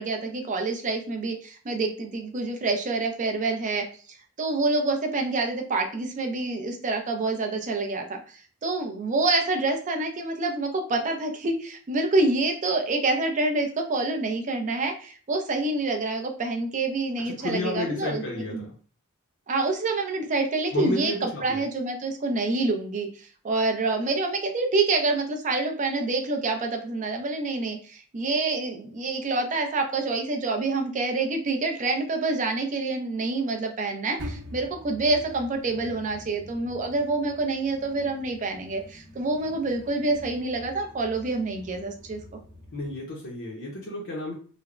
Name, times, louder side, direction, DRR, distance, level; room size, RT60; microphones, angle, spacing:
voice 1, 0.0-18.2 18.5-18.7 19.5-42.4, right 3 dB, 35° right, 3 dB, 0.4 m, -27 dB
voice 2, 17.2-18.7 20.7-21.6 42.7-44.3, left 2 dB, 60° left, -4 dB, 0.6 m, -32 dB
sound 1, 34.2-43.0, equal, 75° right, 0.7 m, -45 dB
3.2 x 2.0 x 2.4 m, 0.42 s
head